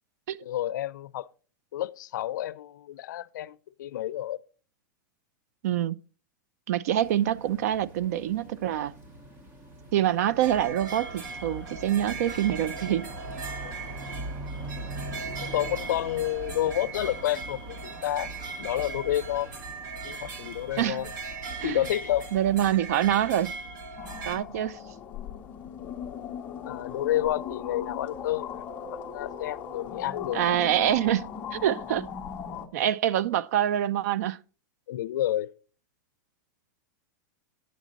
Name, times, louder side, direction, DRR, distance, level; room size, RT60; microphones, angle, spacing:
voice 1, 0.4-1.3 1.7-4.4 13.6-13.7 15.4-18.3 18.6-19.5 20.0-21.1 21.6-22.3 26.7-30.4 34.9-35.5, left 13 dB, 70° left, 0.5 m, -30 dB
voice 2, 5.6-6.0 6.7-8.9 9.9-13.1 20.8-21.0 21.6-21.8 22.3-23.6 24.3-24.8 30.3-32.1 32.7-34.4, right 11 dB, 50° right, 0.4 m, -26 dB
sound 1, 7.0-22.7, right 1 dB, 20° right, 0.8 m, -47 dB
sound 2, 10.4-24.4, right 3 dB, 75° right, 2.0 m, -38 dB
sound 3, 24.0-32.7, left 7 dB, 15° left, 0.6 m, -38 dB
9.2 x 7.4 x 4.0 m
supercardioid pair, 175°, 10 cm